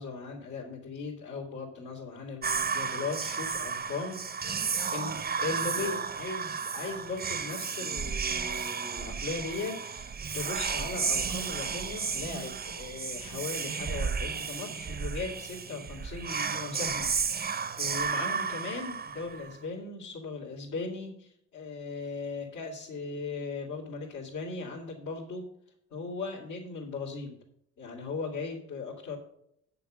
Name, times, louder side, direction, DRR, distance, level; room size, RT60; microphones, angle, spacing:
voice 1, 0.0-4.6 4.9-17.1 17.4-25.4 25.9-27.4 27.8-29.2, left 4 dB, 75° left, -6 dB, 2.9 m, -38 dB
Whispering, 2.4-19.6, right 6 dB, 30° right, 0.7 m, -33 dB
8.9 x 6.8 x 6.3 m, 0.72 s
cardioid pair, 90°, 30 cm